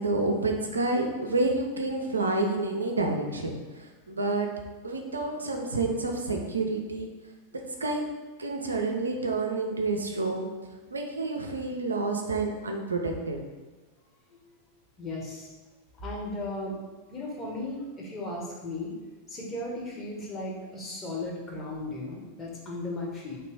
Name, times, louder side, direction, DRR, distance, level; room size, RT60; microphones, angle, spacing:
voice 1, 0.0-4.5 4.8-7.1 7.8-8.0 8.4-10.5 10.9-13.4, right 2 dB, 75° right, 2 dB, 0.5 m, -29 dB
voice 2, 15.0-15.5 16.0-16.8 17.1-18.9 19.3-23.4, left 2 dB, 20° left, -3 dB, 1.1 m, -36 dB
3.2 x 3.0 x 4.6 m, 1.3 s
figure-of-eight pair, 90°, 0 cm